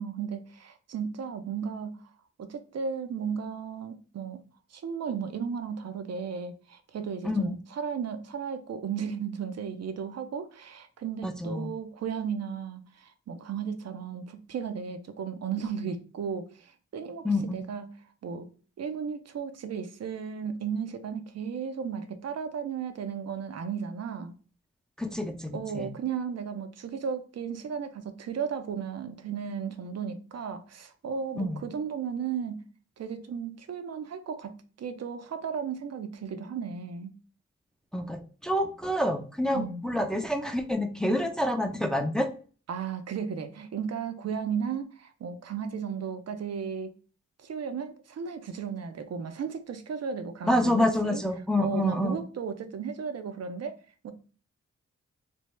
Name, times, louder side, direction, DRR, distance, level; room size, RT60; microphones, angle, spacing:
voice 1, 0.0-2.1 2.4-4.4 4.7-17.9 18.2-18.5 18.8-24.3 25.5-32.6 33.0-37.1 39.5-39.9 42.7-46.9 47.4-51.2 51.6-53.8 54.0-54.1, right 6 dB, 60° right, 0.6 m, -35 dB
voice 2, 11.2-11.7 17.2-17.6 25.0-25.9 31.4-31.6 37.9-42.3 50.5-52.2, left 1 dB, ahead, 0.5 m, -27 dB
3.4 x 2.0 x 3.1 m
supercardioid pair, 45°, 29 cm